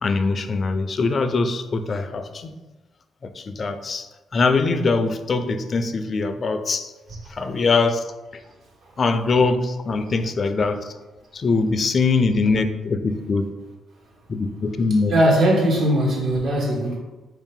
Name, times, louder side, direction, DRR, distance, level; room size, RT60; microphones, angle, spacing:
voice 1, 0.0-2.6 3.2-6.9 7.3-8.4 9.0-11.0 11.3-13.6 14.3-15.2, left 4 dB, 45° left, 9 dB, 0.4 m, -22 dB
voice 2, 15.1-17.0, right 1 dB, 65° right, -2 dB, 1.4 m, -19 dB
4.7 x 2.7 x 3.7 m, 1.2 s
cardioid pair, 90°, 0 cm